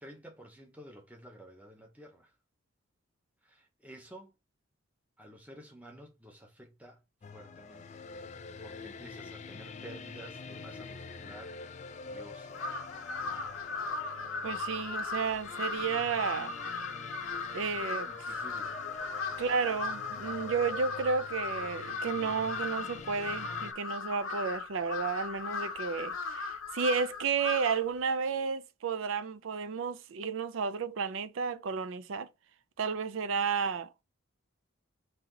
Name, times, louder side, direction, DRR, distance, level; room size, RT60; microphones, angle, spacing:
voice 1, 0.0-2.3 3.4-4.3 5.2-7.0 7.3-11.5 12.0-12.7 18.0-18.8, right 1 dB, 5° right, 0.8 m, -51 dB
sound 1, 7.2-23.7, left 4 dB, 35° left, 0.3 m, -46 dB
Crow, 12.5-27.9, left 4 dB, 85° left, 0.7 m, -37 dB
voice 2, 14.4-16.5 17.5-18.1 19.4-32.3 32.8-34.0, right 5 dB, 70° right, 0.4 m, -32 dB
4.1 x 2.8 x 3.8 m
head